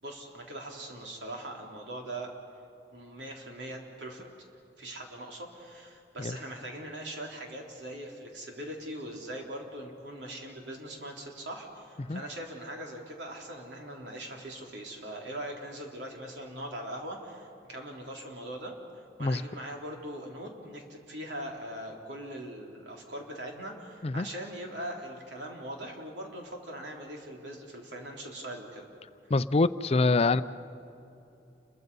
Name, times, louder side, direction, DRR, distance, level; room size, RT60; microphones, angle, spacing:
voice 1, 0.0-2.3 2.9-4.2 4.8-18.7 19.2-28.9, right 1 dB, 80° right, 0 dB, 3.5 m, -41 dB
voice 2, 29.3-30.4, left 3 dB, 35° left, 14 dB, 0.5 m, -25 dB
29.5 x 22.5 x 5.5 m, 2.8 s
head